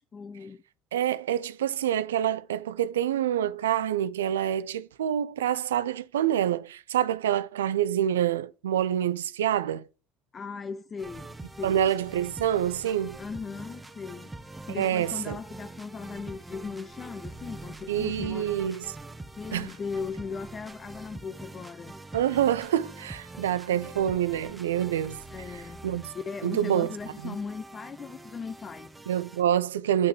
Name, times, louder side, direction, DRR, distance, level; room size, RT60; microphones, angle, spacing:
voice 1, 0.1-0.6 10.3-11.8 13.2-18.5 19.4-21.9 23.5-23.6 25.3-25.8 26.1-28.9, left 5 dB, 35° left, 0.5 m, -38 dB
voice 2, 0.9-9.9 11.6-13.2 14.8-15.4 17.9-18.8 19.5-19.7 22.1-25.2 25.5-26.1 26.4-26.9 27.2-27.3 29.1-30.1, right 10 dB, 85° right, 0.4 m, -27 dB
sound 1, 11.0-29.4, right 2 dB, 15° right, 1.0 m, -44 dB
8.8 x 5.7 x 3.3 m
hypercardioid pair, 70°, 0 cm